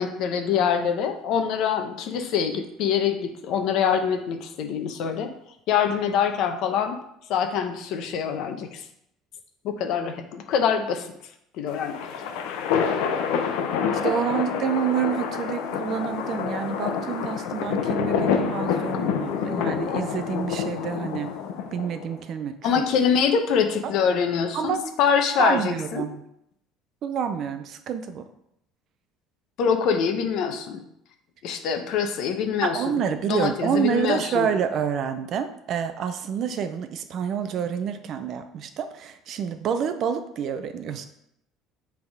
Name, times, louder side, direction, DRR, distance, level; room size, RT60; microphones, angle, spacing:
voice 1, 0.0-5.3 5.7-7.0 7.3-8.8 9.6-11.1 11.6-11.9 22.6-26.1 29.6-30.8 31.4-33.0 33.3-34.5, left 7 dB, 50° left, 6 dB, 0.8 m, -24 dB
sound 1, 11.7-22.1, left 7 dB, 85° left, 0.8 m, -27 dB
voice 2, 13.9-21.3 21.7-22.7 23.8-23.9 24.5-24.9 25.4-26.2 27.0-28.3 32.6-41.0, right 8 dB, 35° right, 9 dB, 0.5 m, -28 dB
7.6 x 3.5 x 4.6 m, 0.76 s
cardioid pair, 175°, 0 cm